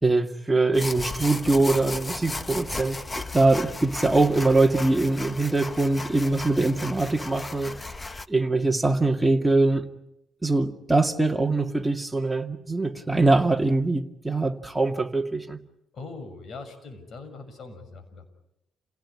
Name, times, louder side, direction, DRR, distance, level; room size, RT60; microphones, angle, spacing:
voice 1, 0.0-7.8 8.3-9.8 10.4-15.6, right 2 dB, 10° right, 2.1 m, -23 dB
sound 1, 0.7-8.3, left 2 dB, 20° left, 0.9 m, -35 dB
voice 2, 15.9-18.2, left 3 dB, 55° left, 6.4 m, -41 dB
29.0 x 17.5 x 9.9 m
cardioid pair, 90°, 0 cm